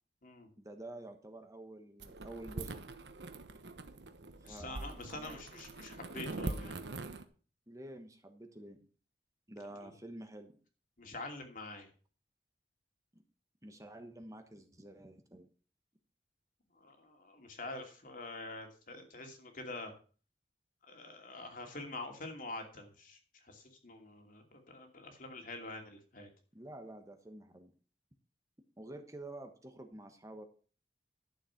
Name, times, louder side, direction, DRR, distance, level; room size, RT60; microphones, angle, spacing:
voice 1, 0.6-2.7 4.5-5.4 7.7-8.8 9.5-10.5 13.1-13.2 13.6-15.5 26.5-27.7 28.8-30.5, right 1 dB, 20° right, 6 dB, 1.3 m, -49 dB
sound 1, 2.0-7.2, right 2 dB, 80° right, 1.1 m, -43 dB
voice 2, 4.4-6.8 9.8-9.9 11.0-11.9 16.8-19.9 20.9-26.3, left 2 dB, 50° left, 4 dB, 2.7 m, -46 dB
12.0 x 7.4 x 5.9 m, 0.39 s
head